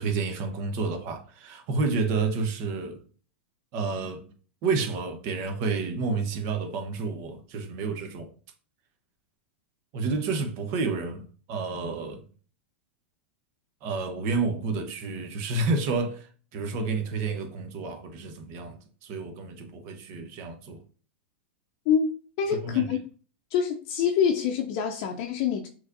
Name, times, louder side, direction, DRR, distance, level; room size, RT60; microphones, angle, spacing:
voice 1, 0.0-3.0 3.7-4.2 4.6-8.3 9.9-12.3 13.8-20.8 22.5-22.9, right 4 dB, 45° right, 1.1 m, -30 dB
voice 2, 22.4-23.0 23.5-25.7, left 7 dB, 50° left, 0.6 m, -25 dB
6.2 x 3.1 x 2.6 m
hypercardioid pair, 100°, 7 cm